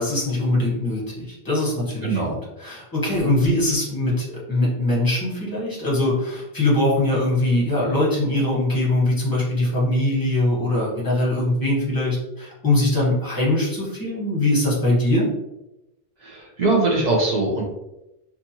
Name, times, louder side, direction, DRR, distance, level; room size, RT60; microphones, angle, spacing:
voice 1, 0.0-15.3, left 1 dB, 20° left, -6 dB, 0.9 m, -22 dB
voice 2, 16.2-17.6, right 2 dB, 50° right, -2 dB, 0.6 m, -21 dB
2.6 x 2.4 x 2.7 m, 0.92 s
omnidirectional pair, 1.1 m